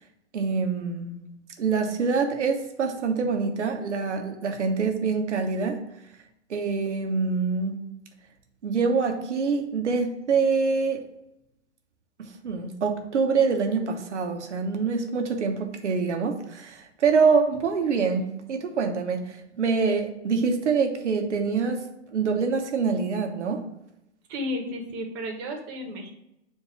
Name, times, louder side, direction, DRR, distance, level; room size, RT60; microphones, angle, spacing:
voice 1, 0.3-1.1 1.6-5.8 6.5-7.8 8.6-11.0 12.2-21.8 22.1-23.6, right 5 dB, 80° right, 4 dB, 1.2 m, -25 dB
voice 2, 24.3-26.1, left 1 dB, 40° right, 3 dB, 1.3 m, -33 dB
7.4 x 2.9 x 4.4 m, 0.84 s
hypercardioid pair, 115°, 35 cm